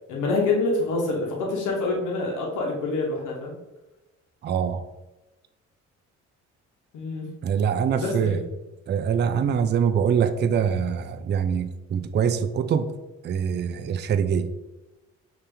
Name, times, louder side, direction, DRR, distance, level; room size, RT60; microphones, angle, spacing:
voice 1, 0.1-3.5 6.9-7.3 8.0-8.4, left 3 dB, 85° left, -2 dB, 1.1 m, -26 dB
voice 2, 4.4-4.8 7.4-8.4 8.9-12.9 13.2-14.6, right 7 dB, 35° right, 9 dB, 0.4 m, -24 dB
5.3 x 2.9 x 3.3 m, 1.0 s
cardioid pair, 90°, 30 cm